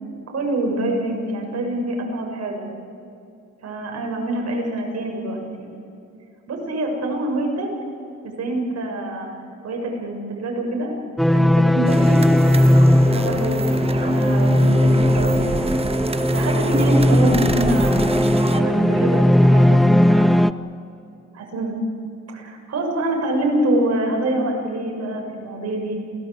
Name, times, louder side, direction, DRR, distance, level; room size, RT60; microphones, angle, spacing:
voice 1, 0.3-2.7 3.6-5.4 6.5-7.7 8.2-9.3 9.6-10.9 11.3-12.3 13.1-15.7 16.3-18.0 18.6-20.5 21.4-21.8 22.3-26.0, right 1 dB, 55° right, 1 dB, 6.6 m, -25 dB
sound 1, 11.2-20.5, left 1 dB, ahead, 0.6 m, -17 dB
sound 2, 11.8-18.6, right 3 dB, 20° right, 1.5 m, -28 dB
28.0 x 18.5 x 8.3 m, 2.6 s
cardioid pair, 90°, 30 cm